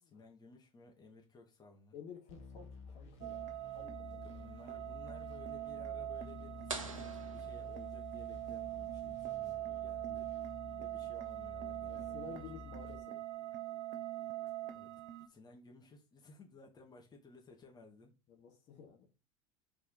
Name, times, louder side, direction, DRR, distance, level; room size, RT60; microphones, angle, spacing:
voice 1, 0.0-2.0 4.1-10.3 10.8-12.8 14.7-14.9 15.2-18.1, left 3 dB, 25° left, 2.3 m, -58 dB
voice 2, 1.9-4.4 11.9-13.2 18.3-19.1, left 6 dB, 45° left, 2.4 m, -52 dB
sound 1, 2.3-12.9, left 4 dB, 65° left, 2.6 m, -52 dB
sound 2, 3.2-15.3, right 14 dB, 45° right, 1.1 m, -43 dB
sound 3, 6.7-8.4, right 4 dB, 85° right, 1.1 m, -45 dB
5.3 x 4.7 x 5.0 m
figure-of-eight pair, 75°, 17 cm